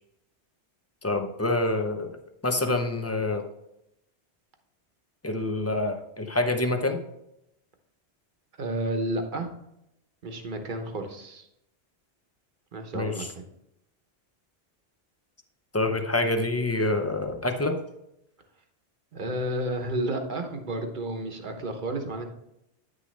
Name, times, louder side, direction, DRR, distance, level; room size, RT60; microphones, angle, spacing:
voice 1, 1.0-2.2 2.4-3.4 5.2-7.0 12.9-13.3 15.7-17.8, left 2 dB, 15° left, 6 dB, 0.5 m, -26 dB
voice 2, 8.6-9.5 10.2-11.5 12.7-13.5 19.1-22.3, right 1 dB, 45° right, 5 dB, 1.1 m, -31 dB
9.5 x 6.4 x 3.3 m, 0.83 s
omnidirectional pair, 1.2 m